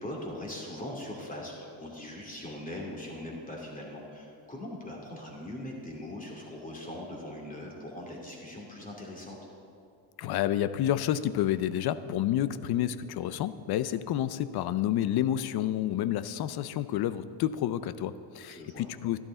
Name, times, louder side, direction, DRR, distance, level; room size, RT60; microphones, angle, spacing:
voice 1, 0.0-9.4 18.5-18.9, left 1 dB, 15° left, -2 dB, 2.7 m, -41 dB
voice 2, 10.2-19.2, left 11 dB, 55° left, 14 dB, 0.6 m, -29 dB
12.0 x 11.5 x 3.9 m, 2.7 s
cardioid pair, 100°, 48 cm